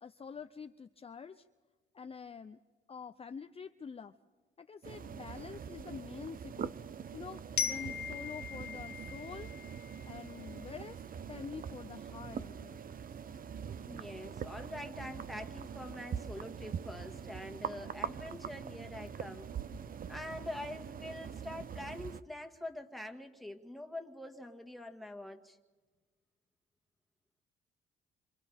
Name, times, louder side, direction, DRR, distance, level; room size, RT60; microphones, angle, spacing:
voice 1, 0.0-1.5 1.9-2.6 2.9-4.1 4.6-6.8 7.1-11.0 11.3-12.8, left 6 dB, 30° left, 9 dB, 0.6 m, -47 dB
sound 1, 4.8-22.2, right 7 dB, 45° right, 0.7 m, -43 dB
Glockenspiel, 7.6-10.4, left 8 dB, 55° left, 1.2 m, -39 dB
voice 2, 13.8-19.5 20.1-25.6, left 1 dB, ahead, 4 dB, 2.0 m, -45 dB
28.0 x 27.0 x 3.6 m, 1.3 s
cardioid pair, 90°, 20 cm